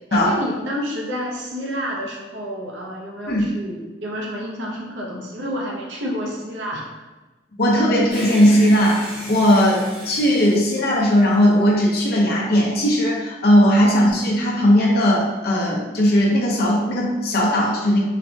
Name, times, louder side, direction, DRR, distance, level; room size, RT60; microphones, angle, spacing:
voice 1, 0.1-6.9, equal, 75° right, -2 dB, 0.6 m, -29 dB
voice 2, 7.6-18.0, equal, 55° left, -3 dB, 0.7 m, -17 dB
sound 1, 8.1-11.6, equal, 25° right, 0.9 m, -34 dB
4.1 x 2.2 x 2.7 m, 1.2 s
head